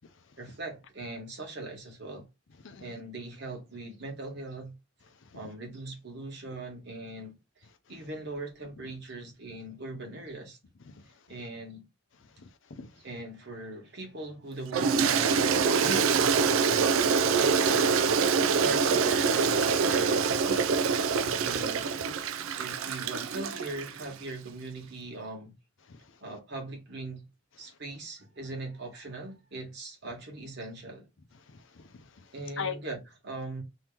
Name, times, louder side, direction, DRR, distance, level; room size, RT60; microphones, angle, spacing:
voice 1, 0.4-2.3 2.8-4.7 5.3-10.6 11.3-11.9 13.0-15.5 15.8-16.9 17.3-18.1 18.6-20.7 21.1-21.9 22.6-25.5 26.2-27.2 27.6-31.1 32.3-33.6, right 2 dB, 55° right, 1.3 m, -40 dB
voice 2, 2.6-3.0 5.2-5.4 10.8-11.0 12.4-13.0 18.4-18.8 21.2-21.3 22.2-22.5 25.9-26.2 31.5-32.8, left 6 dB, 65° left, 0.5 m, -43 dB
Toilet flush, 14.7-24.1, right 5 dB, 75° right, 0.3 m, -25 dB
2.9 x 2.8 x 3.4 m
head